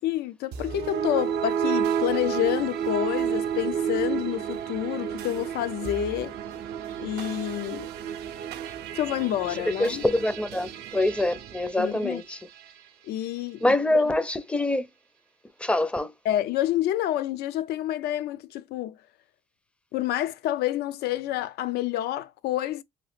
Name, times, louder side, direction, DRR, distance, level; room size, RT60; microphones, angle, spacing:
voice 1, 0.0-6.4 7.0-7.9 9.0-10.0 11.8-12.2 13.0-14.0 16.2-19.0 19.9-22.8, left 13 dB, 70° left, 0.4 m, -28 dB
sound 1, 0.5-12.8, right 8 dB, 70° right, 0.5 m, -31 dB
voice 2, 9.8-12.4 13.6-14.9 15.6-16.1, left 1 dB, 5° left, 0.5 m, -25 dB
3.0 x 2.3 x 3.2 m
cardioid pair, 110°, 17 cm